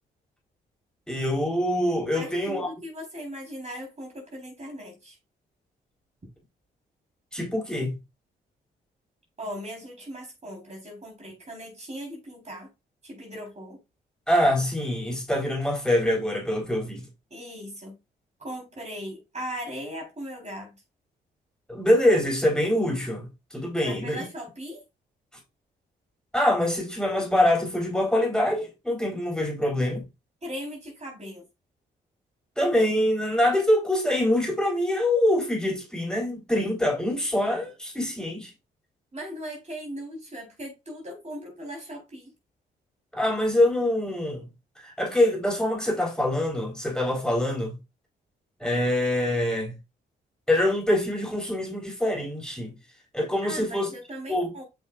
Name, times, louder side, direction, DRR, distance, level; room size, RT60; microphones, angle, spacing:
voice 1, 1.1-2.7 7.3-7.9 14.3-17.1 21.7-24.2 26.3-30.0 32.6-38.5 43.1-44.5 44.8-47.8 48.6-49.7 50.5-52.8 53.1-53.9 54.3-54.5, left 1 dB, 5° left, 4.2 m, -24 dB
voice 2, 2.1-5.2 9.4-12.7 13.0-13.8 17.3-18.0 18.4-20.8 23.8-24.8 30.4-31.4 39.1-42.3 53.4-54.6, equal, 35° right, 4.0 m, -38 dB
8.1 x 5.6 x 2.5 m
supercardioid pair, 55°, 19 cm